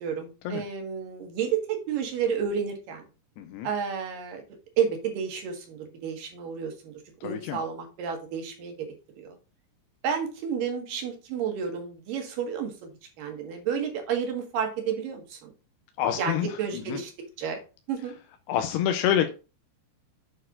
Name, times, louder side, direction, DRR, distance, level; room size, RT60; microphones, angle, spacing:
voice 1, 0.0-3.1 3.6-4.4 4.8-8.7 9.2-9.4 10.0-12.9 13.2-15.5 16.2-17.1 17.4-17.6 17.9-18.1, right 7 dB, 60° right, 3.0 m, -31 dB
voice 2, 3.4-3.7 7.2-7.6 16.0-16.5 16.9-17.0 18.5-19.3, left 10 dB, 85° left, 2.7 m, -26 dB
8.7 x 4.5 x 3.7 m
omnidirectional pair, 4.8 m